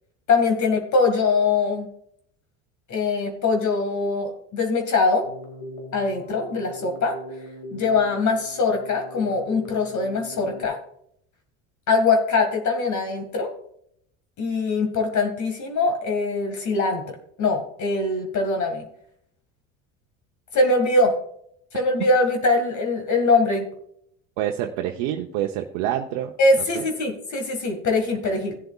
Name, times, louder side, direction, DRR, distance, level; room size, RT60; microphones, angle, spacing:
voice 1, 0.3-1.9 2.9-5.3 5.9-7.1 7.7-10.8 11.9-13.5 14.4-18.8 20.5-21.2 21.7-23.7 26.4-28.5, left 3 dB, 45° left, 4 dB, 2.0 m, -22 dB
Keyboard (musical), 5.2-10.6, equal, 85° left, 2.4 m, -40 dB
voice 2, 24.4-26.3 26.8-26.9, right 11 dB, 70° right, 2 dB, 0.9 m, -27 dB
16.5 x 7.8 x 2.4 m, 0.69 s
hypercardioid pair, 80°, 41 cm